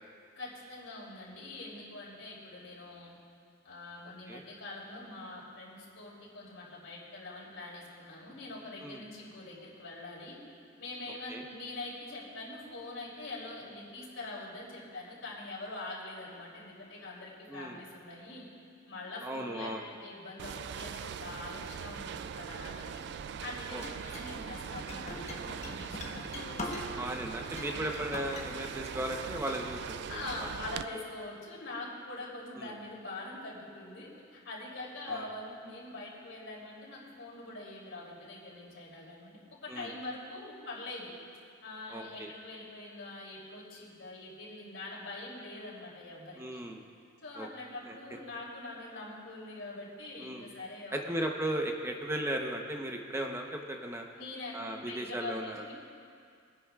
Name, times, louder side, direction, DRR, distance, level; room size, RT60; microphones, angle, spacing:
voice 1, 0.4-3.1 3.6-10.4 10.8-18.4 18.9-23.0 23.4-27.0 30.1-41.1 41.6-46.6 47.2-51.2 54.1-54.5 54.8-55.7, left 2 dB, 80° left, -5 dB, 3.1 m, -44 dB
voice 2, 19.2-19.8 23.7-24.2 26.9-30.5 32.6-32.7 35.1-35.2 39.7-39.9 41.9-42.3 46.4-46.8 47.4-47.5 47.9-48.0 50.2-50.5 50.9-54.0 54.5-55.6, right 1 dB, 15° right, 2 dB, 0.9 m, -36 dB
sound 1, 20.4-30.8, right 7 dB, 60° right, 0.3 m, -41 dB
sound 2, 23.8-27.1 27.5-28.4, left 2 dB, 35° left, 1.3 m, -42 dB
21.5 x 10.0 x 2.4 m, 2.3 s
head